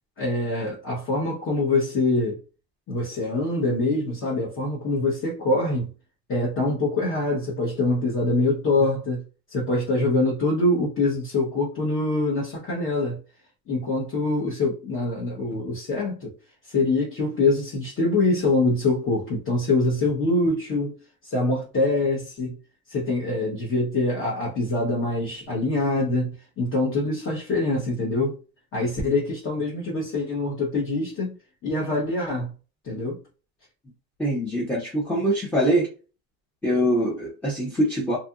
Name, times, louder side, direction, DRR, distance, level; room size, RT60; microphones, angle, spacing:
voice 1, 0.2-2.4 2.9-5.9 6.3-9.2 9.5-13.2 13.7-16.3 16.7-20.9 21.2-22.6 22.9-28.4 28.7-31.4 31.6-32.5 32.8-33.2, left 2 dB, 35° left, 1.0 m, -24 dB
voice 2, 34.2-35.9 36.6-38.2, equal, 5° left, 0.6 m, -23 dB
2.7 x 2.5 x 2.4 m
cardioid pair, 140°, 38 cm